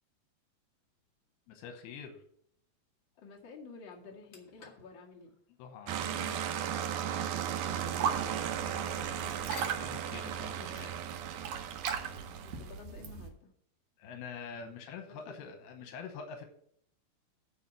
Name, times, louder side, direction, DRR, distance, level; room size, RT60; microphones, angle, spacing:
sound 1, 1.0-1.2 3.3-3.4 3.9-12.6, left 5 dB, 65° left, 1.2 m, -57 dB
voice 1, 1.5-2.2 5.6-6.5 9.8-11.0 11.5-11.9 14.0-16.5, left 6 dB, 85° left, 5 dB, 2.9 m, -46 dB
voice 2, 3.2-5.3 7.3-9.5 12.1-13.5 15.3-15.5, left 4 dB, 40° left, -2 dB, 1.8 m, -52 dB
sound 2, 5.9-12.7, right 9 dB, 85° right, 1.7 m, -36 dB
sound 3, 7.7-13.3, right 7 dB, 70° right, 1.7 m, -39 dB
9.9 x 4.4 x 7.4 m, 0.67 s
omnidirectional pair, 4.6 m